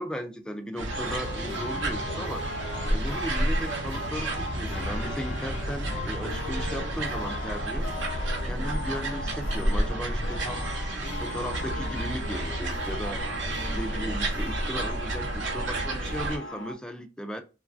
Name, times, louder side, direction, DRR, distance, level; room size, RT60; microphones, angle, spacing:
voice 1, 0.0-2.5 2.9-7.9 8.4-10.7 11.2-13.2 13.7-17.4, equal, 5° left, 0.3 m, -36 dB
sound 1, 0.8-16.4, right 1 dB, 80° right, 0.8 m, -31 dB
sound 2, 0.9-16.7, left 1 dB, 75° left, 0.6 m, -38 dB
sound 3, 4.3-7.4, left 2 dB, 45° right, 0.7 m, -43 dB
3.0 x 2.3 x 2.4 m
head